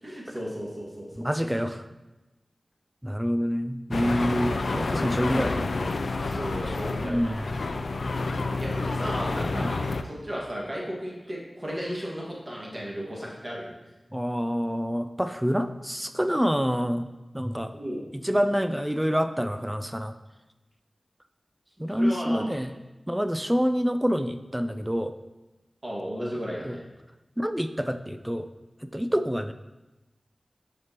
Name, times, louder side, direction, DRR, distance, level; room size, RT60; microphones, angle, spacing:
voice 1, 0.0-1.5 6.2-7.3 8.5-13.7 17.7-18.0 21.9-22.7 25.8-26.8, equal, 35° right, -4 dB, 1.8 m, -35 dB
voice 2, 1.2-1.8 3.0-5.7 7.0-7.5 9.5-9.7 14.1-17.1 17.3-17.7 18.1-20.1 21.8-22.7 23.1-25.1 26.6-26.8 27.4-28.5 28.8-29.5, equal, 10° right, 10 dB, 0.4 m, -27 dB
sound 1, 3.9-10.0, left 3 dB, 85° left, 0.3 m, -29 dB
6.4 x 5.2 x 3.0 m, 1.1 s
cardioid pair, 40°, 0 cm